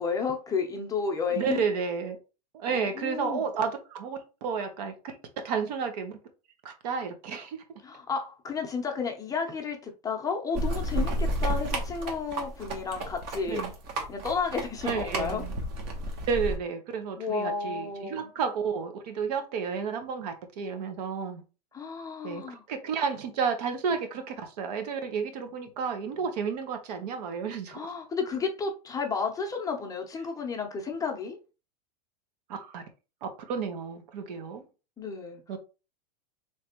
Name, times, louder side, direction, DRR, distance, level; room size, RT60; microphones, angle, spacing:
voice 1, 0.0-1.6 2.7-3.5 7.8-13.7 14.1-15.5 17.2-18.3 21.7-22.6 27.7-31.4 35.0-35.4, left 5 dB, 15° left, 0.7 m, -32 dB
voice 2, 1.3-2.2 2.5-5.2 5.4-6.2 6.6-7.6 13.5-13.7 14.8-15.6 16.3-21.4 22.2-27.9 32.5-32.8 33.2-34.6 35.5-35.6, right 6 dB, 70° right, 1.0 m, -32 dB
sound 1, 10.5-16.6, right 1 dB, 45° right, 1.1 m, -31 dB
3.3 x 3.2 x 2.9 m
supercardioid pair, 130°, 21 cm